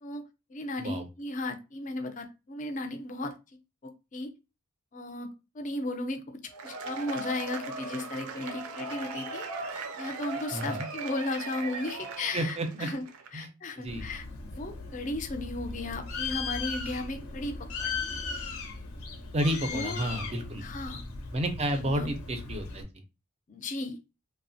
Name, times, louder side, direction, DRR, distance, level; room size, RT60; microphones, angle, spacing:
voice 1, 0.5-3.3 3.8-4.3 4.9-5.3 5.5-6.4 6.6-9.4 9.7-13.0 13.3-17.5 17.8-18.0 19.7-20.0 20.6-21.0 21.8-22.1 23.5-24.0, left 2 dB, 35° left, 6 dB, 0.4 m, -35 dB
Cheering / Applause / Crowd, 6.5-13.3, right 3 dB, 85° right, 0.5 m, -38 dB
voice 2, 10.5-10.9 12.3-12.9 13.3-13.5 13.8-14.1 19.3-20.6 21.3-22.9, right 1 dB, 30° right, 7 dB, 0.4 m, -31 dB
Bird, 13.9-22.8, left 4 dB, 80° left, 0.6 m, -37 dB
2.8 x 2.0 x 2.6 m, 0.27 s
head